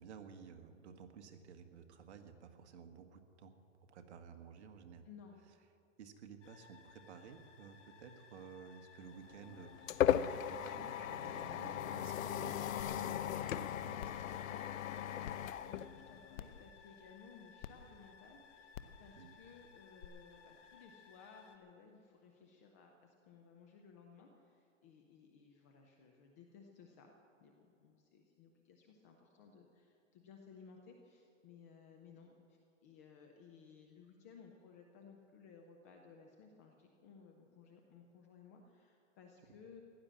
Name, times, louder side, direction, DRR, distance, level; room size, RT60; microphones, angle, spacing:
voice 1, 0.0-3.5 3.9-5.0 6.0-14.2 19.2-19.4, right 6 dB, 55° right, 6 dB, 1.6 m, -54 dB
voice 2, 5.0-5.4 14.3-27.1 27.4-39.8, left 5 dB, 15° left, 2 dB, 0.4 m, -59 dB
sound 1, 6.4-21.6, left 6 dB, 65° left, 1.8 m, -62 dB
sound 2, 9.2-16.6, left 10 dB, 90° left, 0.7 m, -37 dB
sound 3, 12.8-12.9 13.4-13.5 14.0-14.2 15.2-15.3 16.3-16.6 17.6-17.7 18.7-19.0 20.0-20.1, left 11 dB, 45° left, 0.9 m, -47 dB
15.0 x 11.5 x 7.4 m, 2.6 s
hypercardioid pair, 145°, 39 cm